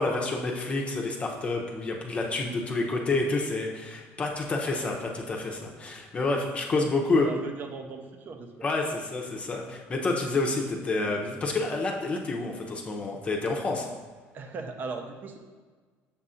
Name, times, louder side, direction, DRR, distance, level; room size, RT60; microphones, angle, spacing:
voice 1, 0.0-7.3 8.6-13.9, left 3 dB, 25° left, 0 dB, 0.7 m, -28 dB
voice 2, 7.2-8.5 14.3-15.4, right 4 dB, 40° right, 5 dB, 0.7 m, -38 dB
6.9 x 2.5 x 5.6 m, 1.4 s
cardioid pair, 125°, 5 cm